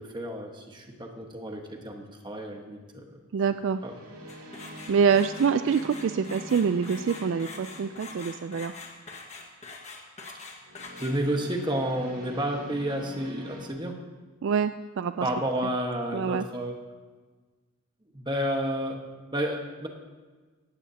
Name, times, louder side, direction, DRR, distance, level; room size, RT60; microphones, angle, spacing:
voice 1, 0.0-3.2 3.8-3.9 11.0-14.0 15.2-16.8 18.1-19.0 19.3-19.9, right 1 dB, 20° right, 2 dB, 1.3 m, -31 dB
sound 1, 1.8-2.1 3.7-8.8 10.6-13.7, equal, 75° right, 2.6 m, -45 dB
voice 2, 3.3-3.8 4.9-8.7 14.4-15.3 16.1-16.5, right 6 dB, 55° right, 11 dB, 0.3 m, -25 dB
sound 2, 4.3-11.4, left 3 dB, 30° left, 1.5 m, -44 dB
17.5 x 14.5 x 2.8 m, 1.4 s
head